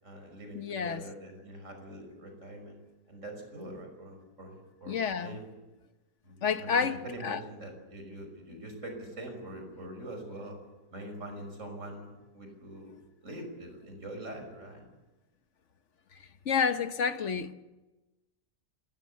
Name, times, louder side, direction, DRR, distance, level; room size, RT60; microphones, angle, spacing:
voice 1, 0.0-2.8 3.1-5.5 6.2-10.6 10.9-12.9 13.2-14.9, right 1 dB, 50° right, 6.2 m, -44 dB
voice 2, 0.5-1.0 4.9-5.4 6.4-7.4 16.4-17.5, left 6 dB, 55° left, 1.3 m, -29 dB
29.5 x 16.0 x 8.4 m
omnidirectional pair, 1.6 m